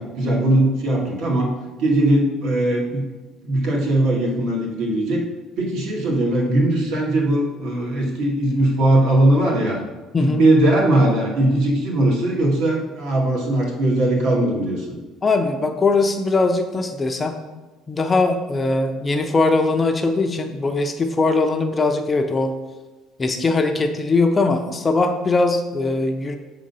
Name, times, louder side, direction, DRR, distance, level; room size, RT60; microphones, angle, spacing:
voice 1, 0.0-1.5 1.8-3.0 3.4-5.2 5.6-9.8 10.2-14.9, right 1 dB, 70° right, -2 dB, 1.7 m, -19 dB
voice 2, 10.1-10.5 15.2-17.4 17.9-22.5 23.2-26.4, left 3 dB, 15° left, 5 dB, 0.4 m, -20 dB
6.9 x 3.7 x 5.4 m, 1.2 s
cardioid pair, 170°, 0 cm